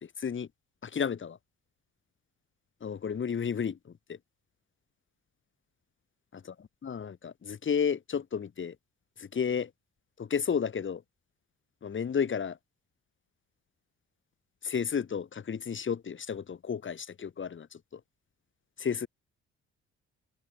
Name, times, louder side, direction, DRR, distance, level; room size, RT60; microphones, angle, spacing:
voice 1, 0.0-0.5 0.8-1.4 2.8-4.2 6.8-8.8 9.2-9.7 10.2-11.0 11.8-12.6 14.6-18.0 18.8-19.1, left 7 dB, 40° left, 1.8 m, -32 dB
cardioid pair, 90°, 30 cm